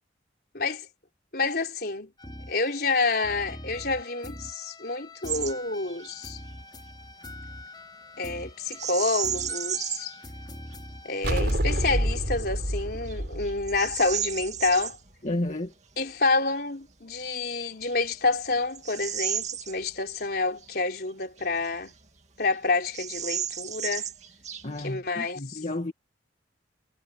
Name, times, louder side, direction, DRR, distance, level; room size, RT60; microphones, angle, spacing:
voice 1, 0.5-0.9 1.3-2.1 2.5-6.4 8.2-10.1 11.0-15.0 16.0-21.9 22.4-24.1 24.8-25.6, left 3 dB, 55° left, 4.0 m, -28 dB
sound 1, 2.2-11.3, left 1 dB, 25° left, 4.5 m, -44 dB
Bird vocalization bird call bird song, 5.3-5.6 5.9-6.1 8.7-10.2 10.7-10.8 11.4-11.8 12.4-12.5 13.1-15.0 17.1-17.2 17.8-20.2 20.6-20.7 21.4-22.2 22.4-22.5 22.8-24.9, right 9 dB, 40° right, 2.4 m, -33 dB
sound 2, 11.2-14.7, equal, 60° right, 4.1 m, -28 dB
voice 2, 15.2-15.7 24.6-25.9, left 1 dB, 40° left, 2.2 m, -31 dB
head